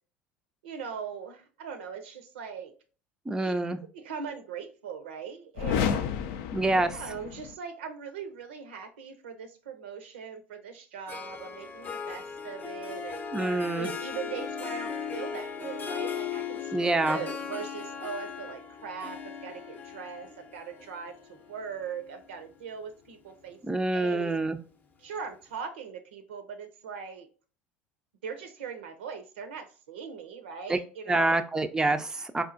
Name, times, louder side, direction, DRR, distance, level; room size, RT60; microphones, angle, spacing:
voice 1, 0.6-2.7 3.4-3.6 3.9-6.1 6.7-13.2 13.7-23.6 23.9-24.3 25.0-27.3 28.2-31.4, right 6 dB, 80° right, 0.6 m, -40 dB
voice 2, 3.3-3.8 6.5-6.9 13.3-13.9 16.7-17.2 23.6-24.6 30.7-30.8 31.1-32.4, right 2 dB, 10° right, 0.4 m, -26 dB
sound 1, 5.5-7.6, left 7 dB, 65° left, 0.4 m, -31 dB
Harp, 11.1-22.5, left 6 dB, 30° left, 0.6 m, -38 dB
4.3 x 2.4 x 2.5 m
hypercardioid pair, 70°, 6 cm